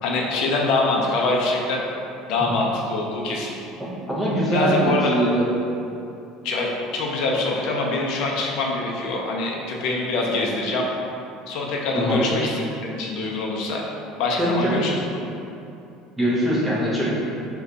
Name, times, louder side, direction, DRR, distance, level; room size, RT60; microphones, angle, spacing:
voice 1, 0.0-1.8 2.3-3.6 4.5-5.2 6.4-10.9 11.5-12.6 12.9-13.8 14.2-15.3, left 2 dB, 50° left, -1 dB, 0.4 m, -24 dB
voice 2, 3.8-5.4 11.9-12.4 14.4-14.9 16.2-17.1, right 1 dB, 10° right, -7 dB, 0.4 m, -22 dB
2.5 x 2.2 x 3.8 m, 2.7 s
cardioid pair, 180°, 0 cm